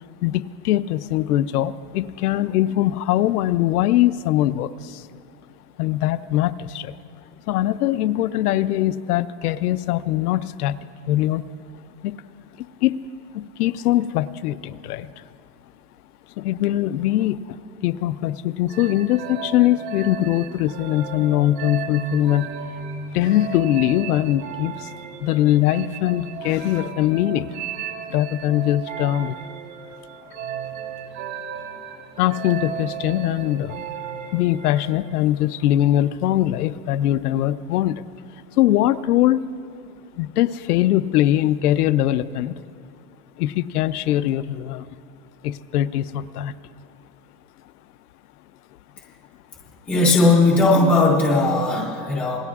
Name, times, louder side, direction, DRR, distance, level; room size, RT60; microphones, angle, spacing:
voice 1, 0.2-5.1 5.8-6.9 7.5-10.8 11.1-11.4 12.0-12.1 12.6-13.0 13.3-15.2 16.4-17.6 17.8-22.5 23.1-24.9 25.2-27.6 28.1-29.4 32.2-33.8 34.3-38.0 38.6-39.4 40.2-42.5 43.4-44.9 45.4-46.5, left 13 dB, 65° left, 13 dB, 0.6 m, -21 dB
sound 1, 18.7-35.1, right 7 dB, 80° right, 2.1 m, -34 dB
voice 2, 49.9-52.4, left 2 dB, 5° left, -5 dB, 0.4 m, -17 dB
26.5 x 19.5 x 2.4 m, 2.5 s
supercardioid pair, 170°, 49 cm